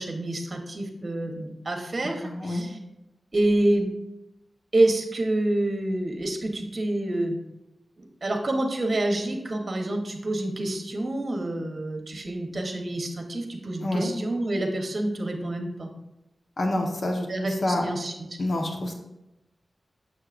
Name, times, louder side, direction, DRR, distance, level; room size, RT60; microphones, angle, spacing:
voice 1, 0.0-2.8 3.3-3.9 4.7-7.4 8.0-15.9 17.3-18.1, right 1 dB, 45° right, 3 dB, 1.1 m, -27 dB
voice 2, 2.2-2.6 13.8-14.1 16.6-17.8 18.4-18.9, left 1 dB, 60° left, 2 dB, 1.0 m, -27 dB
6.5 x 6.4 x 2.5 m, 0.93 s
cardioid pair, 65°, 0 cm